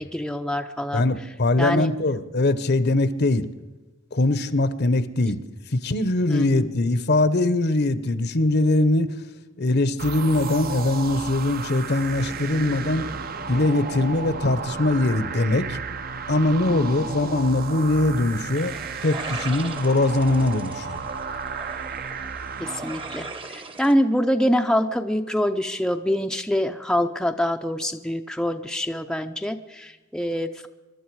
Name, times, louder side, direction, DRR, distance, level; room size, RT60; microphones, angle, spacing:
voice 1, 0.0-1.0 1.6-1.9 6.3-6.7 16.7-17.2 22.6-30.7, equal, 5° left, 5 dB, 0.5 m, -25 dB
voice 2, 0.9-3.5 4.1-5.4 5.7-9.2 9.6-13.1 13.5-15.8 16.3-18.8 19.0-21.1, left 2 dB, 55° left, 14 dB, 0.9 m, -22 dB
sound 1, 10.0-23.5, right 5 dB, 45° right, 0.7 m, -33 dB
sound 2, 12.2-16.4, equal, 90° right, 6.3 m, -42 dB
sound 3, 18.5-23.9, right 3 dB, 25° right, 1.0 m, -39 dB
24.0 x 12.0 x 4.7 m, 1.2 s
head